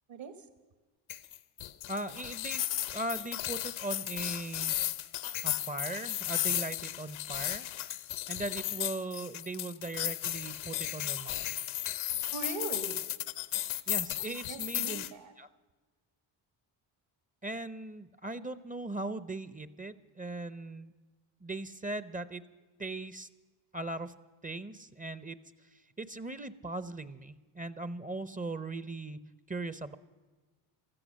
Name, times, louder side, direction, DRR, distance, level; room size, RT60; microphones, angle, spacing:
voice 1, 0.1-0.5 12.3-13.0 14.3-15.3, right 4 dB, 60° right, 9 dB, 1.4 m, -40 dB
sound 1, 1.1-15.1, left 13 dB, 70° left, 0.9 m, -35 dB
voice 2, 1.9-2.6 2.9-4.8 5.4-7.7 8.3-11.4 13.9-15.0 15.4-15.5 17.4-20.9 21.4-22.4 22.8-23.3 23.7-24.1 24.4-25.4 25.7-29.2 29.5-30.0, right 2 dB, 15° right, 15 dB, 0.6 m, -39 dB
16.5 x 13.5 x 6.4 m, 1.3 s
supercardioid pair, 75°, 50 cm